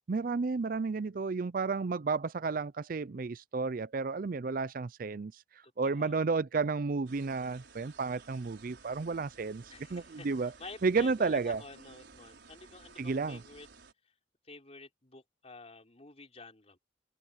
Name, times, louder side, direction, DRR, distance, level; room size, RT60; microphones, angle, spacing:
voice 1, 0.1-5.3 5.8-9.6 9.9-10.5 10.8-11.6 13.0-13.4, right 4 dB, 50° right, 0.5 m, -32 dB
voice 2, 5.6-6.2 9.7-13.7 14.4-16.8, left 3 dB, 35° left, 4.1 m, -50 dB
sound 1, 7.1-13.9, right 4 dB, 70° right, 4.9 m, -55 dB
head